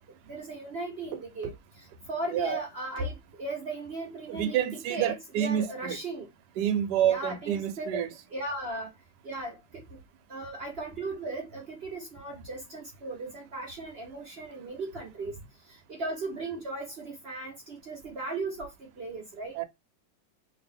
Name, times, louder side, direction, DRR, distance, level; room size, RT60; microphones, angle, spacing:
voice 1, 0.2-1.5 1.8-4.6 4.9-6.3 7.0-7.9 8.3-8.9 9.2-10.0 10.3-15.4 15.7-19.5, right 2 dB, 55° right, 0.7 m, -37 dB
voice 2, 2.3-2.6 4.3-6.0 6.6-8.1 19.5-19.7, right 10 dB, 70° right, 1.1 m, -28 dB
2.9 x 2.8 x 3.4 m
omnidirectional pair, 2.1 m